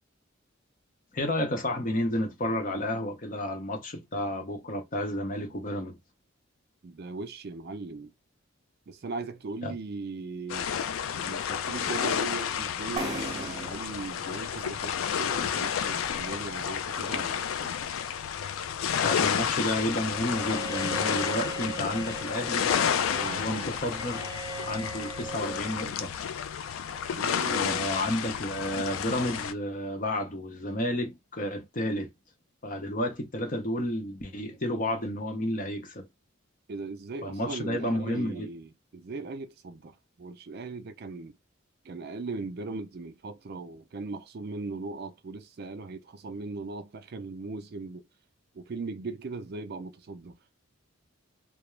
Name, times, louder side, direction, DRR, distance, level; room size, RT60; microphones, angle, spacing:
voice 1, 1.1-6.0 9.6-9.8 19.0-22.8 23.3-24.3 24.6-26.1 27.4-32.1 32.6-36.1 37.2-38.5, left 1 dB, 40° left, 0.7 m, -31 dB
voice 2, 6.8-8.1 8.9-10.7 11.1-17.7 23.1-23.5 27.1-27.9 36.7-41.4 41.8-48.1 48.5-50.4, right 3 dB, 50° right, 0.4 m, -39 dB
sound 1, 10.5-29.5, left 8 dB, 75° left, 0.3 m, -31 dB
sound 2, 13.0-16.6, right 2 dB, 20° right, 0.7 m, -40 dB
Bowed string instrument, 20.2-25.7, right 2 dB, 20° left, 1.0 m, -40 dB
2.3 x 2.0 x 3.0 m
head